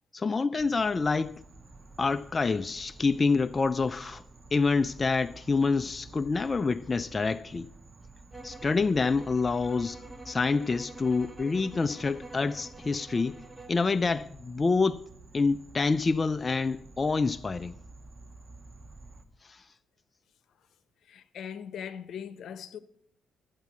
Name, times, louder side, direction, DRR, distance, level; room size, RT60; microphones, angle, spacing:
voice 1, 0.1-1.4 2.0-4.2 4.5-7.7 8.4-13.4 13.7-15.0 15.3-17.8 19.4-19.6, left 4 dB, 30° left, 0.4 m, -27 dB
sound 1, 0.6-19.2, right 3 dB, 30° right, 1.7 m, -51 dB
sound 2, 8.3-13.8, right 2 dB, ahead, 1.9 m, -47 dB
voice 2, 21.0-22.8, left 8 dB, 65° left, 1.0 m, -41 dB
14.0 x 8.2 x 9.2 m
cardioid pair, 90°, 0 cm